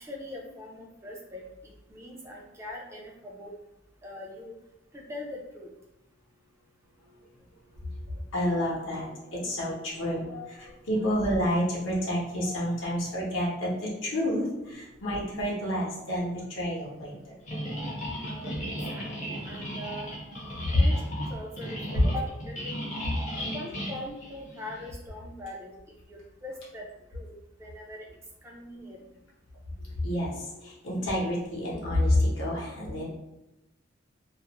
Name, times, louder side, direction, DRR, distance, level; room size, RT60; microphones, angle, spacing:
voice 1, 0.0-3.5 4.0-4.5 4.9-5.7 18.3-20.1 20.7-21.0 21.3-22.9 23.3-25.7 26.1-27.3 27.6-28.1 28.4-29.1, left 1 dB, 15° right, -2 dB, 0.4 m, -42 dB
voice 2, 7.7-17.3 18.2-18.4 19.0-19.1 20.7-20.8 29.8-33.1, left 1 dB, 75° left, -5 dB, 0.8 m, -29 dB
sound 1, 17.5-24.9, equal, 40° left, 0.6 m, -36 dB
2.4 x 2.0 x 2.8 m, 0.93 s
head